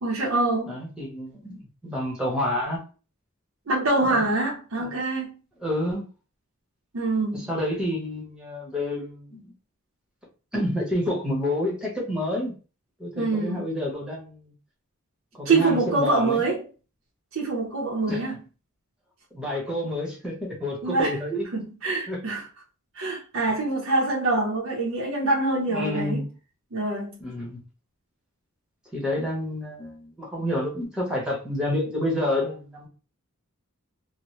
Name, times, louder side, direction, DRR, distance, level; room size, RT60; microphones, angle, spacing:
voice 1, 0.0-0.8 3.7-5.4 6.9-7.5 13.2-13.6 15.4-16.6 17.3-18.3 20.8-21.2 21.8-22.4 23.0-26.2 26.7-27.2, right 2 dB, 75° right, 0.7 m, -25 dB
voice 2, 0.7-2.8 4.0-4.3 4.8-4.9 5.6-6.1 7.3-9.5 10.5-12.5 13.0-14.5 15.3-16.4 18.1-18.2 19.3-21.5 22.1-22.2 25.7-26.3 27.2-27.6 28.9-32.9, left 1 dB, 5° right, 0.9 m, -29 dB
2.8 x 2.1 x 3.1 m
head